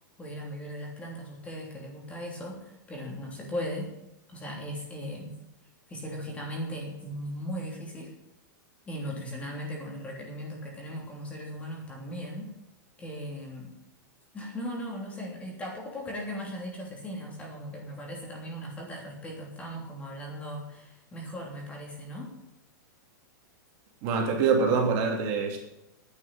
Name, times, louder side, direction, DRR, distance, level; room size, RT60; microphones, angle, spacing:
voice 1, 0.2-3.9 4.3-5.3 5.9-8.1 8.9-12.5 13.0-13.7 14.3-22.3, equal, 15° left, -1 dB, 3.2 m, -38 dB
voice 2, 24.0-25.6, right 5 dB, 40° right, 1 dB, 3.2 m, -25 dB
10.0 x 9.4 x 8.9 m, 0.89 s
supercardioid pair, 155°, 10 cm